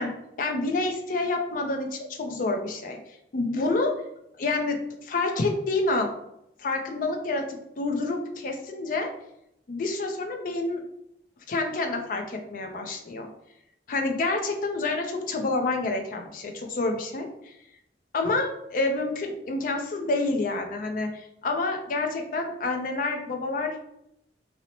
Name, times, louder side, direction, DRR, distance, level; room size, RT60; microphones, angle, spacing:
voice 1, 0.0-3.0 3.3-3.9 4.4-6.1 6.6-9.1 9.7-10.8 11.5-13.3 13.9-17.5 18.1-23.8, left 2 dB, 50° left, 3 dB, 0.4 m, -28 dB
2.6 x 2.0 x 2.8 m, 0.79 s
head